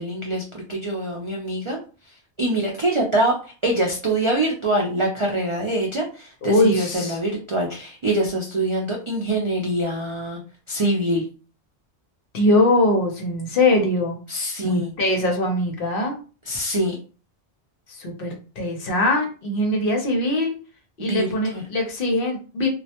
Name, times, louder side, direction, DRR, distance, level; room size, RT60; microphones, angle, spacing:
voice 1, 0.0-1.8 2.4-3.3 3.6-10.4 10.7-11.2 14.3-14.9 16.5-17.0 21.0-21.3 21.5-21.6, right 1 dB, 55° right, -1 dB, 0.3 m, -24 dB
voice 2, 6.4-7.2 12.3-14.2 14.6-16.2 17.9-20.6 21.0-22.7, left 1 dB, 60° left, 2 dB, 0.8 m, -22 dB
2.3 x 2.1 x 2.8 m, 0.36 s
omnidirectional pair, 1.1 m